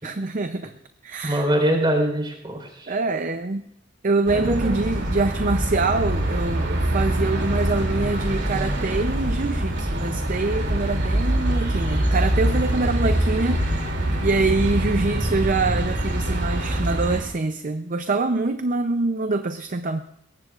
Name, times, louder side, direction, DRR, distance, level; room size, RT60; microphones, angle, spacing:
voice 1, 0.0-0.7 1.0-1.5 2.9-3.6 4.0-13.6 14.2-20.0, right 3 dB, 40° right, 9 dB, 0.6 m, -25 dB
voice 2, 1.2-3.0 4.3-4.8, right 1 dB, 25° right, 2 dB, 4.1 m, -24 dB
sound 1, 4.3-17.2, right 1 dB, 60° right, 2.9 m, -24 dB
21.5 x 18.5 x 2.5 m, 0.77 s
head